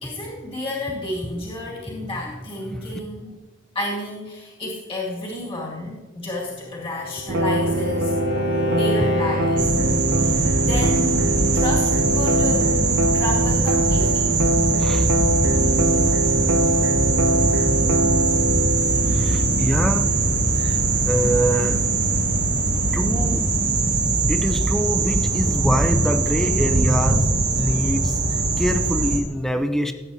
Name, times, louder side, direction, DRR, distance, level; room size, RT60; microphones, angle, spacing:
voice 1, 0.0-3.4 3.7-8.2 8.7-9.7 10.2-12.8 13.1-14.4, left 2 dB, 30° left, -4 dB, 2.1 m, -31 dB
voice 2, 2.7-3.0 14.8-15.1 17.9-18.2 18.6-18.7 19.0-20.1 20.6-21.8 22.9-23.5 24.3-29.9, equal, ahead, 7 dB, 0.7 m, -25 dB
Bowed string instrument, 6.4-10.0, left 1 dB, 85° left, 1.2 m, -28 dB
sound 1, 7.3-24.0, right 1 dB, 60° right, 0.6 m, -24 dB
sound 2, 9.6-29.2, right 3 dB, 40° right, 1.8 m, -21 dB
17.0 x 8.6 x 2.8 m, 1.2 s
head